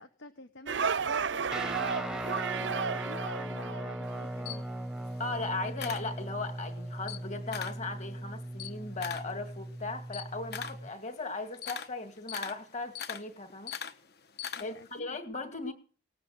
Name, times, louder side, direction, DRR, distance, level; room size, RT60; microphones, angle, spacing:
voice 1, 0.0-4.7 14.5-15.2, left 2 dB, 75° left, 1.2 m, -50 dB
sound 1, 0.7-4.3, right 6 dB, 75° right, 0.6 m, -33 dB
Guitar, 1.5-10.9, right 1 dB, 5° right, 0.7 m, -38 dB
Camera, 4.0-6.6 7.0-7.9 8.2-15.0, left 8 dB, 55° left, 1.1 m, -42 dB
voice 2, 5.2-13.7 14.6-15.7, left 3 dB, 35° left, 2.4 m, -37 dB
19.0 x 8.3 x 7.9 m
head